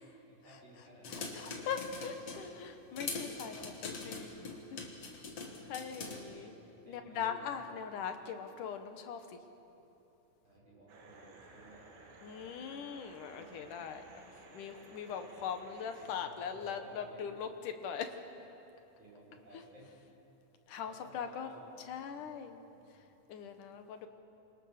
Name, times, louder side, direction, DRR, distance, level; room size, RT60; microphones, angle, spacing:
voice 1, 0.3-1.6 5.8-6.5 6.8-7.6 8.2-8.4 10.4-11.9 13.2-13.7 16.0-17.4 18.4-18.5 19.0-19.9 20.8-21.7 21.9-22.9, right 1 dB, 30° right, -5 dB, 7.5 m, -57 dB
sound 1, 1.0-2.5 3.0-6.2, left 4 dB, 45° left, 3.0 m, -42 dB
voice 2, 1.1-4.9 5.7-6.5 6.9-9.4 12.2-14.2 14.5-18.1 20.7-21.5 21.9-22.7 23.3-24.1, left 7 dB, 65° left, 7 dB, 2.7 m, -41 dB
sound 2, 10.9-16.2, right 3 dB, 85° right, 4.5 m, -56 dB
28.0 x 24.5 x 6.7 m, 2.9 s
omnidirectional pair, 4.1 m